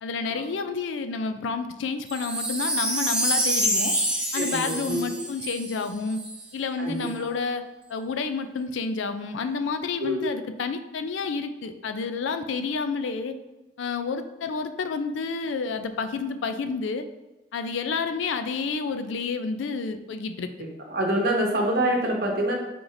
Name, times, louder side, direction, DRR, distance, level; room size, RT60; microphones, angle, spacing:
voice 1, 0.0-3.9 4.3-6.2 6.5-7.6 7.9-13.3 13.8-17.1 17.5-20.5, left 4 dB, 85° left, 9 dB, 0.4 m, -29 dB
Wind chime, 2.1-6.4 7.0-7.1, right 1 dB, 5° right, 0.4 m, -27 dB
voice 2, 4.3-5.2 6.8-7.1 10.0-10.3 20.9-22.5, right 1 dB, 55° right, 0 dB, 0.9 m, -25 dB
4.5 x 2.6 x 3.9 m, 1.0 s
head